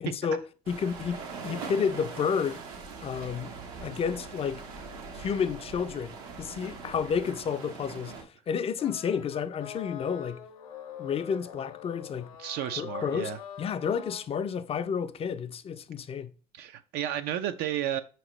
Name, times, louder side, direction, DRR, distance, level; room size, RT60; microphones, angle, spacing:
voice 1, 0.0-2.6 3.0-4.6 5.1-10.4 11.0-12.3 12.8-16.3, left 6 dB, 30° left, 0.4 m, -31 dB
sound 1, 0.7-8.2, right 4 dB, 85° right, 0.9 m, -42 dB
sound 2, 8.8-14.3, left 9 dB, 90° left, 0.6 m, -43 dB
voice 2, 12.4-13.4 16.5-18.0, right 11 dB, 65° right, 0.4 m, -32 dB
5.0 x 2.9 x 3.0 m
hypercardioid pair, 65°, 18 cm